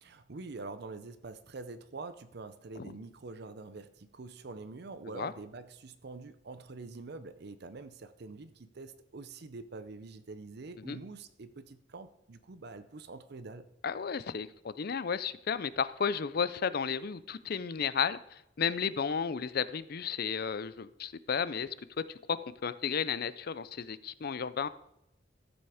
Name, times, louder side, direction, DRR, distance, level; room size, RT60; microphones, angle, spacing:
voice 1, 0.0-13.7, right 3 dB, 60° right, 12 dB, 0.6 m, -45 dB
voice 2, 13.8-24.7, left 6 dB, 55° left, 16 dB, 0.5 m, -33 dB
13.5 x 7.1 x 4.9 m, 0.85 s
head